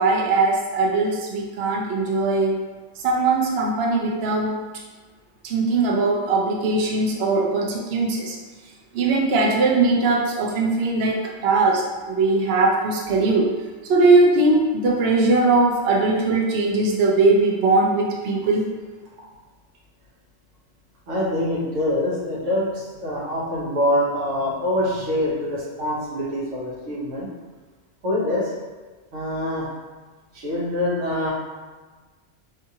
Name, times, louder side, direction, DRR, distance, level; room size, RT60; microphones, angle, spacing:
voice 1, 0.0-2.6 3.0-4.6 5.4-8.4 8.9-13.5 13.8-18.7, right 3 dB, 65° right, -1 dB, 0.7 m, -20 dB
voice 2, 21.1-27.3 28.0-28.5 29.1-29.7 30.3-31.3, left 1 dB, 90° right, -5 dB, 1.1 m, -25 dB
2.7 x 2.4 x 2.7 m, 1.3 s
omnidirectional pair, 1.2 m